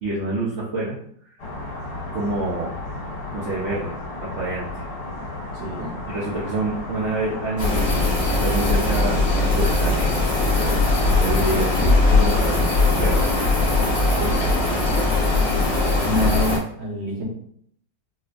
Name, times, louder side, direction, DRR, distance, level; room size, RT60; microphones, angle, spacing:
voice 1, 0.0-1.0 2.1-2.7 3.3-3.9 4.2-4.8 6.1-10.8 11.1-12.7 13.0-13.3, right 2 dB, 85° right, -6 dB, 0.6 m, -27 dB
sound 1, 1.4-16.6, left 2 dB, 60° left, 1.3 m, -34 dB
voice 2, 5.5-5.9 14.1-14.6 16.0-17.2, equal, 50° right, -2 dB, 0.8 m, -27 dB
sound 2, 7.6-16.6, left 2 dB, 40° left, 0.5 m, -20 dB
4.2 x 2.5 x 2.3 m, 0.64 s
omnidirectional pair, 2.0 m